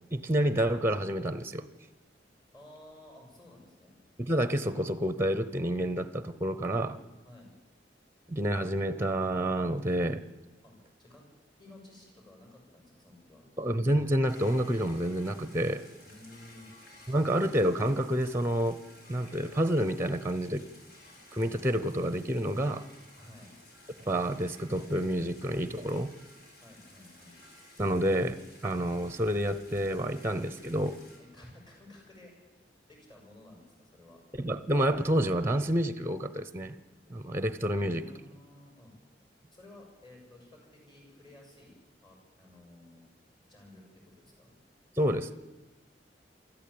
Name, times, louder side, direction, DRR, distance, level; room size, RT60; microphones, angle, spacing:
voice 1, 0.1-1.7 4.2-7.0 8.3-10.2 13.6-15.9 17.1-18.8 19.1-20.6 21.3-22.9 24.1-26.1 27.8-31.0 34.3-36.7 37.1-38.0 45.0-45.3, right 1 dB, 15° right, 14 dB, 0.8 m, -29 dB
voice 2, 2.5-4.0 7.2-7.5 10.6-11.2 11.6-13.4 16.0-16.7 23.2-23.5 26.6-27.4 31.2-32.3 32.9-34.2 37.7-38.9 39.5-43.0 43.4-44.5, left 1 dB, 25° left, 0 dB, 7.3 m, -54 dB
sound 1, 14.3-31.2, left 1 dB, 60° left, 5.1 m, -55 dB
24.0 x 14.0 x 8.6 m, 1.1 s
head